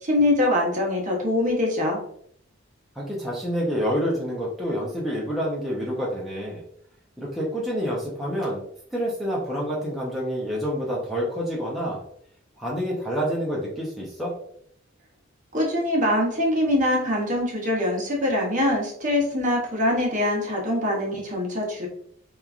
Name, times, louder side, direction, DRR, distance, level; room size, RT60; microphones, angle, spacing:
voice 1, 0.0-2.0 15.5-21.9, left 1 dB, 40° right, -1 dB, 0.8 m, -23 dB
voice 2, 3.0-6.6 7.2-8.6 8.9-12.0 12.6-14.3, equal, ahead, -5 dB, 0.5 m, -28 dB
3.0 x 2.3 x 2.4 m, 0.65 s
head